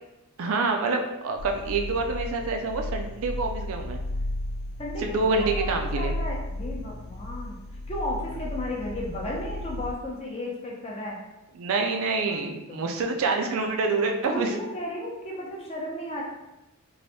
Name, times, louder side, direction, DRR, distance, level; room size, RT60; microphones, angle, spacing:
voice 1, 0.4-4.0 5.0-6.1 11.5-14.5, right 3 dB, 65° right, 4 dB, 0.4 m, -27 dB
sound 1, 1.4-9.9, left 1 dB, 70° left, 0.3 m, -34 dB
voice 2, 4.8-5.7 5.9-7.6 7.9-11.2 12.2-12.9 14.3-16.2, left 1 dB, 30° left, -3 dB, 0.6 m, -34 dB
3.2 x 2.6 x 2.7 m, 0.95 s
head